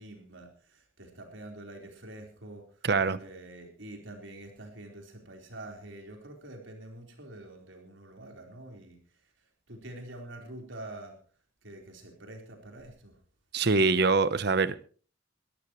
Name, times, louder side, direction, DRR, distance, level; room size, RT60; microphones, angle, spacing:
voice 1, 0.0-2.9 3.2-11.2 11.6-13.2, right 1 dB, 80° right, 4.2 m, -46 dB
voice 2, 2.8-3.2 13.5-14.8, right 4 dB, 55° right, 0.8 m, -24 dB
22.0 x 13.5 x 3.1 m
head